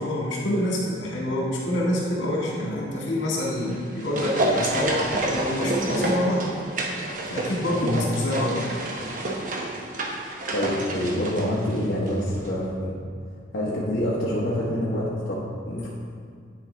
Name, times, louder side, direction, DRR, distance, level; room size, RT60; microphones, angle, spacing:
voice 1, 0.0-6.5 7.3-8.7, left 1 dB, 90° left, -4 dB, 1.9 m, -26 dB
sound 1, 3.6-12.2 12.4-12.5, right 1 dB, 45° right, 0.8 m, -29 dB
voice 2, 10.5-13.0 13.5-15.9, equal, 65° left, -7 dB, 1.1 m, -26 dB
10.0 x 5.0 x 3.4 m, 2.1 s
head